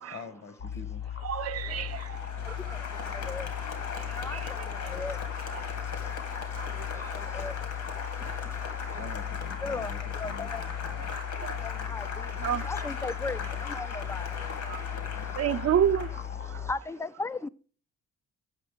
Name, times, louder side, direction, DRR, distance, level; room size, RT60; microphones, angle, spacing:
voice 1, 0.1-1.0 8.9-11.1, left 3 dB, 60° left, 1.4 m, -45 dB
sound 1, 0.6-16.7, left 10 dB, 40° left, 0.7 m, -37 dB
voice 2, 1.2-2.6 3.3-3.4 3.9-4.9 5.5-5.7 6.5-6.7 6.9-7.2 8.2-8.4 8.9-9.0 11.1-11.6 12.4-12.7 14.7-14.8 15.4-16.2 16.5-16.7, right 9 dB, 55° right, 0.7 m, -31 dB
Applause, 1.6-16.4, left 4 dB, 75° left, 2.2 m, -39 dB
voice 3, 10.2-10.6 11.9-12.0 12.7-13.4 13.8-14.2 16.7-17.5, left 3 dB, 10° left, 0.3 m, -34 dB
8.1 x 5.9 x 5.1 m
cardioid pair, 90°, 30 cm